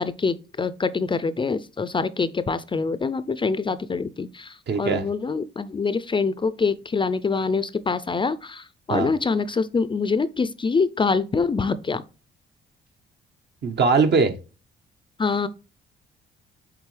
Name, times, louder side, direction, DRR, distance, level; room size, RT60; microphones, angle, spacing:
voice 1, 0.0-12.0 15.2-15.5, left 4 dB, 25° left, 0.4 m, -25 dB
voice 2, 4.7-5.0 8.9-9.1 13.6-14.3, right 4 dB, 60° right, 1.1 m, -20 dB
8.2 x 3.7 x 3.3 m
cardioid pair, 90°, 20 cm